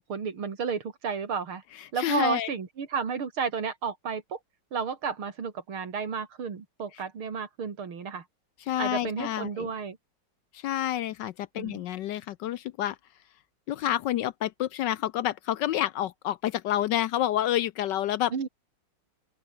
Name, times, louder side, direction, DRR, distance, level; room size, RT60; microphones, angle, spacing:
voice 1, 0.0-1.6 1.9-4.4 4.7-8.2 8.8-10.0 11.6-11.8 18.3-18.5, right 6 dB, 85° right, 3.5 m, -32 dB
voice 2, 1.8-2.5 6.9-7.0 8.6-9.7 10.5-13.0 13.7-18.3, left 12 dB, 75° left, 1.1 m, -29 dB
open air
omnidirectional pair, 2.3 m